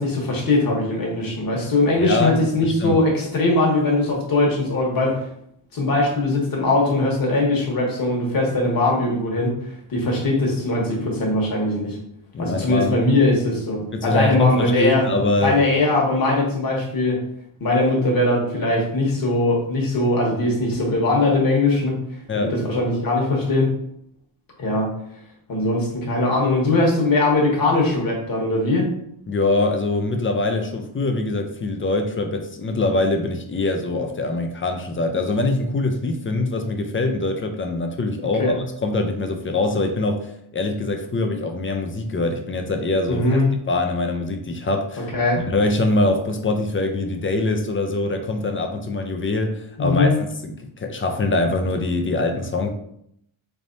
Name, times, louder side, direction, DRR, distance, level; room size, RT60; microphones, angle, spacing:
voice 1, 0.0-5.2 5.7-9.5 9.9-12.0 12.4-15.1 15.4-17.2 17.6-22.0 22.3-23.7 24.6-24.9 25.5-28.9 38.4-38.5 43.1-43.5 45.1-45.4 49.8-50.2, left 2 dB, 45° left, -2 dB, 1.2 m, -20 dB
voice 2, 2.0-3.0 12.3-13.0 13.9-15.6 22.3-22.6 29.3-43.4 43.7-45.1 45.5-52.7, left 2 dB, 30° left, 4 dB, 0.4 m, -23 dB
4.0 x 3.4 x 2.6 m, 0.73 s
wide cardioid pair, 125°, 49 cm